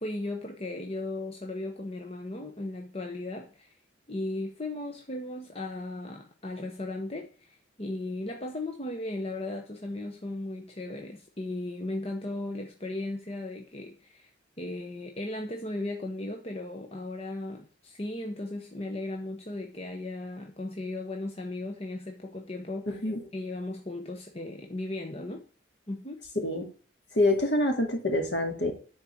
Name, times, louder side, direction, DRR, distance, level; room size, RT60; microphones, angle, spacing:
voice 1, 0.0-3.7 4.1-14.3 14.6-23.0 23.3-25.4 25.9-26.2, left 2 dB, 30° left, 0.9 m, -36 dB
voice 2, 22.9-23.2 26.4-26.7 27.1-28.7, left 1 dB, 60° left, 2.3 m, -26 dB
10.0 x 4.5 x 5.9 m
head